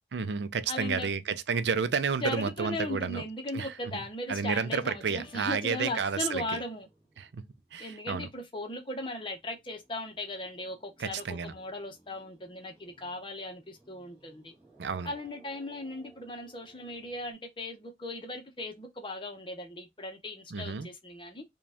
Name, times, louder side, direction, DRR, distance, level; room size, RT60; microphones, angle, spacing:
voice 1, 0.1-3.2 3.5-3.7 4.3-6.6 7.2-7.4 7.7-8.3 11.0-11.5 14.8-15.1 20.5-20.9, right 5 dB, 70° right, 0.5 m, -31 dB
voice 2, 0.7-1.1 2.2-6.9 7.8-14.5 15.0-21.4, left 1 dB, 25° left, 0.7 m, -38 dB
sound 1, 4.7-8.8 9.1-17.3, right 2 dB, 10° right, 1.9 m, -62 dB
4.9 x 2.3 x 3.4 m
head